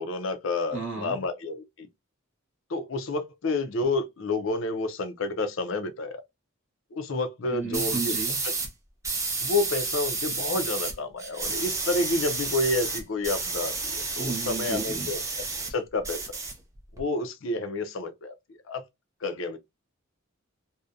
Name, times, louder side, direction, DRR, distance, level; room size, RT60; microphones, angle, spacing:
voice 1, 0.0-1.9 2.7-6.2 6.9-8.2 9.4-15.2 15.7-16.4 17.0-18.3 18.7-18.8 19.2-19.6, left 2 dB, 65° left, 0.5 m, -29 dB
voice 2, 0.7-1.2 7.5-8.4 14.2-15.1, right 3 dB, 60° right, 0.9 m, -33 dB
sound 1, 7.7-8.7 9.0-10.9 11.2-15.7 16.0-17.0, right 4 dB, 15° right, 0.5 m, -31 dB
2.6 x 2.1 x 2.4 m
head